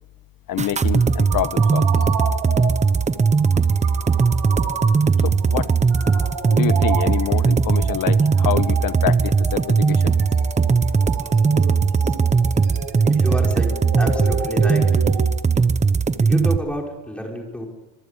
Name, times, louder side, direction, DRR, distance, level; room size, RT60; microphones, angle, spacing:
voice 1, 0.5-2.0 5.2-5.7 6.5-10.1, left 12 dB, 50° left, 14 dB, 1.2 m, -26 dB
sound 1, 0.6-16.6, right 5 dB, 15° right, 0.9 m, -18 dB
sound 2, 0.7-15.2, right 5 dB, 75° right, 7.4 m, -32 dB
voice 2, 13.1-14.9 16.2-17.7, equal, 5° left, 0 dB, 5.4 m, -29 dB
25.5 x 23.0 x 8.4 m, 1.3 s
cardioid pair, 140°, 43 cm